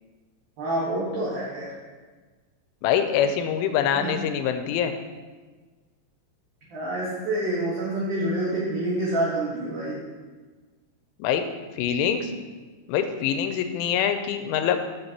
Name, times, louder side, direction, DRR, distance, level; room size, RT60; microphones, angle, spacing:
voice 1, 0.6-1.7 3.9-4.1 6.7-10.0, right 1 dB, 60° right, -7 dB, 2.3 m, -27 dB
voice 2, 2.8-5.0 11.2-11.4 11.8-12.3 12.9-14.8, left 8 dB, 90° left, 8 dB, 3.1 m, -24 dB
14.0 x 6.4 x 2.9 m, 1.4 s
omnidirectional pair, 5.5 m